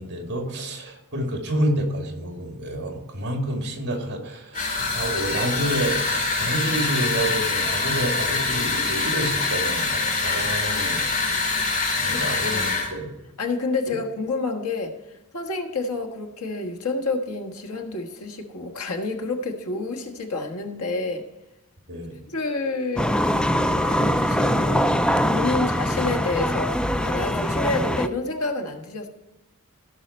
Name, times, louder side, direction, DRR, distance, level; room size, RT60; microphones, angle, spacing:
voice 1, 0.0-11.0 12.0-13.1 21.9-22.2, right 1 dB, 50° right, 2 dB, 2.4 m, -29 dB
sound 1, 4.5-12.9, left 3 dB, 40° left, 2.6 m, -25 dB
voice 2, 12.5-12.8 13.4-21.2 22.3-23.1 23.5-25.0 25.3-29.1, left 3 dB, 85° left, 4 dB, 1.5 m, -29 dB
sound 2, 23.0-28.1, equal, 5° left, 0.3 m, -22 dB
16.0 x 5.7 x 4.3 m, 0.99 s
head